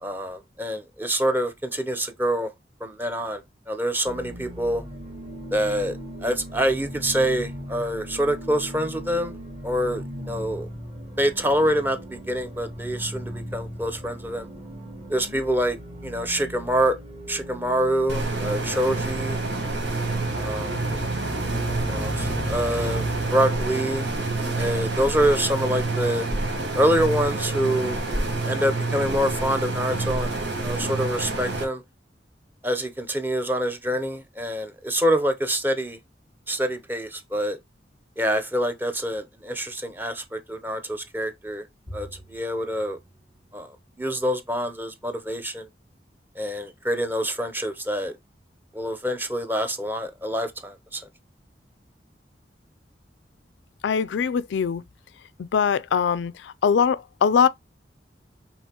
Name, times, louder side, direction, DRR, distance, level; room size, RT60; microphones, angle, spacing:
voice 1, 0.0-2.5 2.8-4.8 5.5-9.3 9.6-10.7 11.2-14.5 15.1-15.8 16.0-17.0 17.3-19.4 20.3-20.8 21.8-24.1 24.6-26.3 26.7-28.0 28.4-30.4 30.6-31.8 32.6-36.0 36.5-37.6 38.2-41.6 41.9-43.0 43.5-45.7 46.4-48.2 48.7-51.0, equal, 10° right, 0.6 m, -26 dB
sound 1, 4.0-23.3, equal, 35° right, 1.7 m, -37 dB
sound 2, 18.1-31.6, right 2 dB, 90° right, 1.4 m, -27 dB
Bowed string instrument, 41.9-44.4, equal, 60° right, 2.0 m, -46 dB
voice 2, 53.8-54.8 55.4-57.5, left 6 dB, 85° left, 0.4 m, -22 dB
5.4 x 3.3 x 2.9 m
head